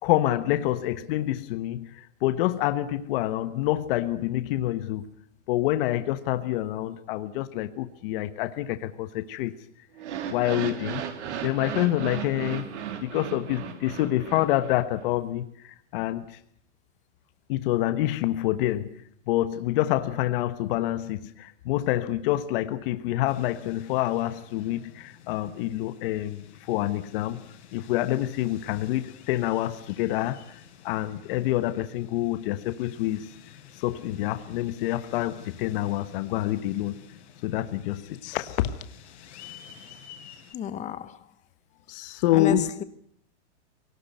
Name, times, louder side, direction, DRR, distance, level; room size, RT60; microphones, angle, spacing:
voice 1, 0.0-5.0 5.5-9.5 10.3-11.0 11.4-12.6 13.0-16.4 17.5-18.9 19.3-27.4 27.7-30.4 30.8-33.3 33.8-37.0 37.4-38.7 41.9-42.7, left 14 dB, 50° left, 1.3 m, -27 dB
sound 1, 10.0-15.1, right 8 dB, 70° right, 3.3 m, -35 dB
sound 2, 23.3-40.5, left 8 dB, 65° left, 6.0 m, -51 dB
voice 2, 40.5-41.2 42.3-42.8, left 10 dB, 20° left, 1.0 m, -31 dB
21.5 x 18.5 x 9.2 m
supercardioid pair, 150°, 36 cm